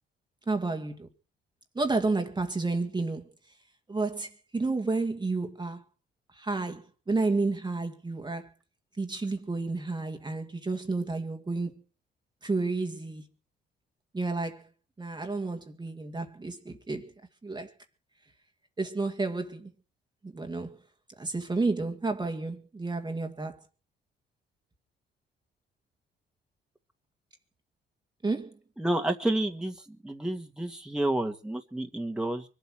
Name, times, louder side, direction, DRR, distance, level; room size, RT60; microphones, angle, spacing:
voice 1, 0.5-1.1 1.8-3.3 3.9-5.8 6.3-8.5 9.0-11.8 12.4-13.2 14.1-14.7 15.0-17.1 17.4-17.7 18.8-19.7 20.2-20.8 21.2-23.6 28.2-28.5, right 3 dB, 20° right, 1.9 m, -31 dB
voice 2, 28.8-32.5, right 1 dB, 5° right, 2.1 m, -30 dB
24.0 x 8.3 x 6.3 m
cardioid pair, 90°, 20 cm